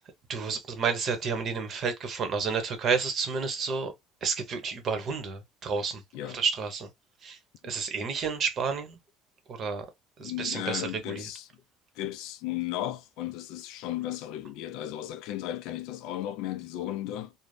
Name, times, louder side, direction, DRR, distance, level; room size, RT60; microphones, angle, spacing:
voice 1, 0.3-3.9 4.2-6.0 6.3-6.9 7.2-7.4 7.6-9.0 9.5-9.8 10.2-11.3, right 5 dB, 45° right, 0.8 m, -30 dB
voice 2, 10.2-11.5 12.0-17.3, left 13 dB, 75° left, 0.3 m, -35 dB
2.5 x 2.0 x 3.2 m
cardioid pair, 125°, 0 cm